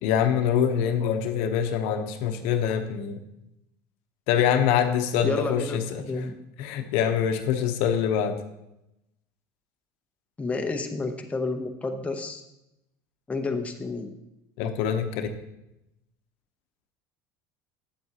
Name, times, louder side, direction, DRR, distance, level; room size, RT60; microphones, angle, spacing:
voice 1, 0.0-3.2 4.3-6.2 6.6-8.4 14.6-15.3, left 8 dB, 70° left, 7 dB, 0.8 m, -25 dB
voice 2, 5.2-6.4 10.4-12.4 13.3-14.1, left 3 dB, 15° left, 3 dB, 0.7 m, -30 dB
8.5 x 7.8 x 2.8 m, 0.89 s
supercardioid pair, 115°, 10 cm